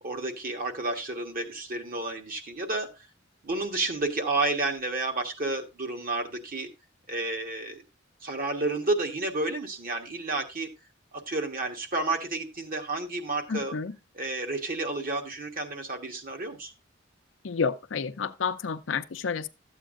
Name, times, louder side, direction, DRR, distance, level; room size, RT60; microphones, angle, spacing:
voice 1, 0.0-2.9 3.4-6.7 7.1-7.8 8.2-10.7 11.1-13.8 14.1-16.7, right 2 dB, 50° right, 1.4 m, -31 dB
voice 2, 13.5-13.9 17.4-19.5, left 5 dB, 75° left, 0.6 m, -30 dB
12.5 x 8.1 x 2.5 m
head